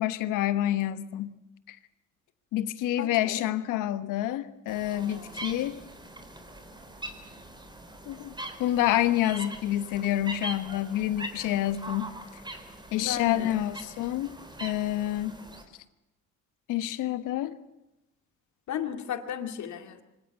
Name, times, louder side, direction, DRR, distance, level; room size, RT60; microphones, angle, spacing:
voice 1, 0.0-1.3 1.7-1.8 2.5-5.8 8.1-8.3 8.6-12.1 12.9-15.4 16.7-17.5, left 13 dB, 90° left, 13 dB, 1.3 m, -28 dB
voice 2, 3.0-3.4 13.0-13.6 18.7-20.0, left 9 dB, 65° left, 7 dB, 2.3 m, -34 dB
sound 1, 4.7-15.6, right 1 dB, 15° right, 3.8 m, -42 dB
24.5 x 17.5 x 8.1 m, 0.92 s
cardioid pair, 100°, 31 cm